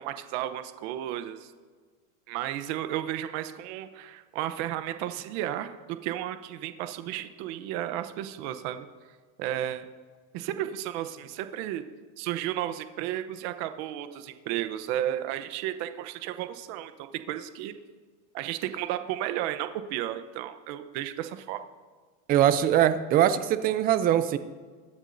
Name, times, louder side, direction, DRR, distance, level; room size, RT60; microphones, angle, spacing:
voice 1, 0.0-1.5 2.3-8.9 9.4-9.8 10.3-11.8 12.2-17.7 18.3-21.6, right 12 dB, 50° right, 9 dB, 0.9 m, -33 dB
voice 2, 22.3-24.4, right 11 dB, 25° right, 12 dB, 0.4 m, -22 dB
23.0 x 9.7 x 2.7 m, 1.5 s
supercardioid pair, 150°, 41 cm